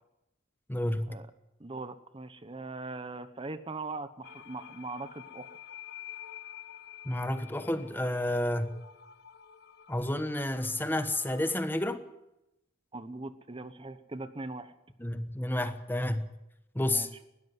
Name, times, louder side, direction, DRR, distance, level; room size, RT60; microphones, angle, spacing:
voice 1, 0.7-1.2 7.0-8.8 9.9-12.0 15.0-16.3 16.7-17.1, left 1 dB, 10° left, 9 dB, 1.2 m, -30 dB
voice 2, 1.6-5.5 12.9-14.8 16.9-17.1, right 3 dB, 30° right, 12 dB, 1.1 m, -40 dB
sound 1, 4.2-11.7, left 10 dB, 60° left, 1.2 m, -49 dB
20.5 x 13.5 x 9.7 m, 0.89 s
head